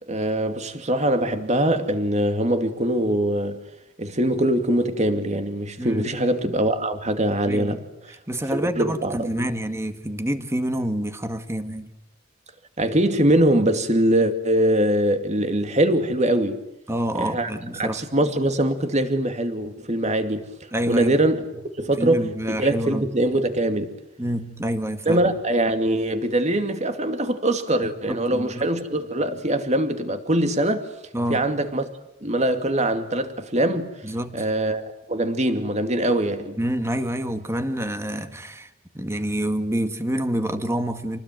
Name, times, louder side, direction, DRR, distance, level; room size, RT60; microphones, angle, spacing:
voice 1, 0.1-3.6 4.0-7.8 8.5-9.5 12.8-16.6 17.1-17.5 17.8-20.5 20.9-21.4 21.8-23.9 25.1-30.9 31.3-31.8 32.2-33.9 34.3-36.6, right 1 dB, 35° right, 2.5 m, -22 dB
voice 2, 7.5-11.9 16.9-18.0 20.7-21.2 22.0-23.0 24.2-25.3 27.8-28.7 31.1-31.5 34.0-34.4 36.6-38.7 38.9-41.2, equal, 15° right, 1.9 m, -27 dB
28.0 x 20.0 x 9.3 m
head